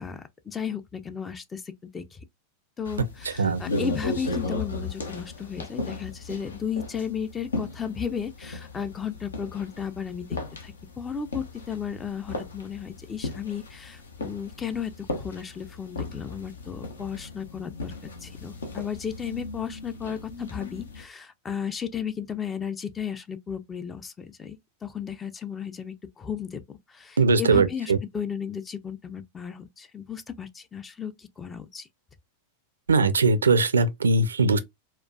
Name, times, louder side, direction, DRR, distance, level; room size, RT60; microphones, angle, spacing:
voice 1, 0.0-1.6 1.9-2.2 2.8-10.3 10.6-17.9 18.2-26.6 26.9-31.9, left 7 dB, 20° left, 0.4 m, -34 dB
sound 1, 2.9-21.0, left 2 dB, 70° left, 0.7 m, -36 dB
voice 2, 3.2-3.6 27.2-28.0 32.9-34.6, right 3 dB, 70° right, 0.5 m, -21 dB
4.3 x 2.3 x 2.3 m
figure-of-eight pair, 90°, 0 cm